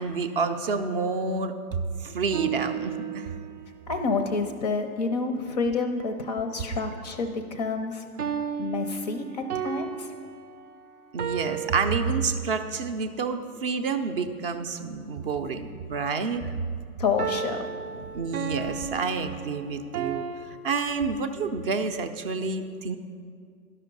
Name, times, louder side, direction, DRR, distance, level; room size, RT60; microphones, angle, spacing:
voice 1, 0.0-1.5 2.0-3.3 11.1-16.5 18.1-23.0, right 4 dB, 40° right, 8 dB, 0.5 m, -29 dB
sound 1, 2.3-3.7 8.2-12.7 17.2-20.5, right 8 dB, 90° right, 0.7 m, -34 dB
voice 2, 3.9-8.0 8.6-10.1 17.0-18.2, left 4 dB, 30° left, 7 dB, 0.4 m, -29 dB
11.5 x 5.5 x 5.2 m, 2.1 s
hypercardioid pair, 130°, 45 cm